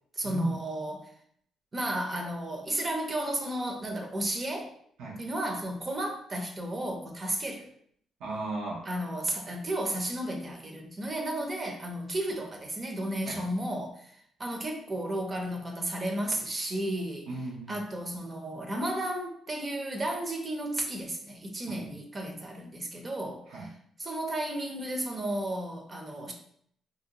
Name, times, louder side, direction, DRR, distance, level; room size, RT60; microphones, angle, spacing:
voice 1, 0.1-1.1 1.7-4.7 5.2-7.7 8.9-17.3 17.7-23.7 24.0-26.3, right 1 dB, 30° right, 3 dB, 0.5 m, -33 dB
voice 2, 8.2-8.9 13.3-13.5 17.3-17.8 21.7-22.0 23.5-23.7, right 2 dB, 85° right, -3 dB, 0.6 m, -35 dB
2.7 x 2.1 x 2.8 m, 0.65 s
cardioid pair, 90°, 0 cm